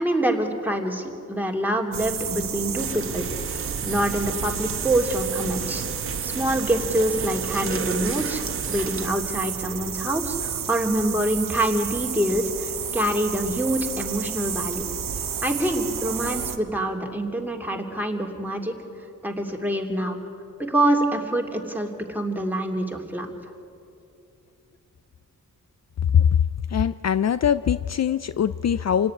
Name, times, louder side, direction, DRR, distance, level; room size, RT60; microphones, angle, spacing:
voice 1, 0.0-5.8 6.2-8.4 8.7-14.8 15.4-18.7 19.2-20.2 20.6-23.3, right 1 dB, 5° right, 1 dB, 3.0 m, -25 dB
sound 1, 1.9-16.6, right 8 dB, 85° right, 1.3 m, -31 dB
sound 2, 2.8-9.1, right 4 dB, 40° right, 1.4 m, -34 dB
voice 2, 26.7-29.1, left 8 dB, 55° left, 15 dB, 0.5 m, -22 dB
28.0 x 18.0 x 9.8 m, 2.6 s
wide cardioid pair, 105°, 32 cm